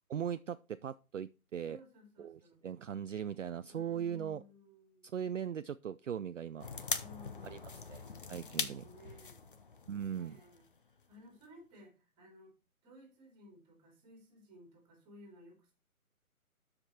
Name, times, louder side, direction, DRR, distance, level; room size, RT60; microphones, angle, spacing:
voice 1, 0.1-1.8 2.2-4.4 5.1-6.7 7.5-7.6 7.9-8.0 8.3-8.8 9.9-10.4, right 8 dB, 60° right, 0.5 m, -39 dB
voice 2, 1.7-2.7 3.7-5.1 7.0-7.9 8.4-9.5 10.1-10.7 11.1-12.5 12.8-15.7, left 1 dB, 10° right, 2.5 m, -57 dB
sound 1, 6.6-11.1 11.4-11.5, left 4 dB, 35° left, 0.7 m, -41 dB
12.0 x 5.1 x 4.2 m
figure-of-eight pair, 160°, 44 cm